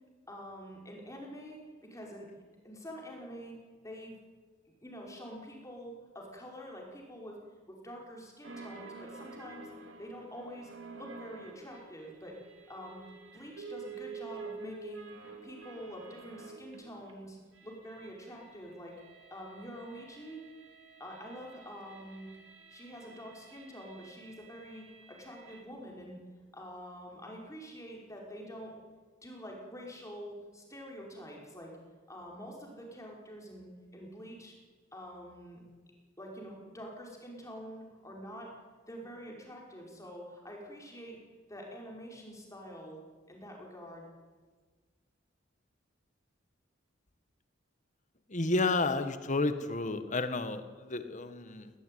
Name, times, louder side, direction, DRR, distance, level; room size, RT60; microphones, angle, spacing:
voice 1, 0.3-1.6 1.9-2.3 2.6-3.6 3.8-4.1 4.7-7.4 7.7-9.7 10.0-12.4 12.7-13.0 13.3-15.1 15.4-19.0 19.3-20.4 21.0-22.3 22.7-26.2 26.5-28.7 29.2-31.7 32.1-33.7 33.9-34.5 34.9-35.6 36.2-38.5 38.9-41.2 41.5-44.1, equal, 15° left, -1 dB, 5.4 m, -46 dB
sound 1, 8.4-17.1 17.4-25.6, right 4 dB, 75° right, 3.4 m, -49 dB
voice 2, 48.3-51.7, left 3 dB, 40° left, 10 dB, 1.6 m, -31 dB
19.5 x 18.0 x 9.4 m, 1.4 s
head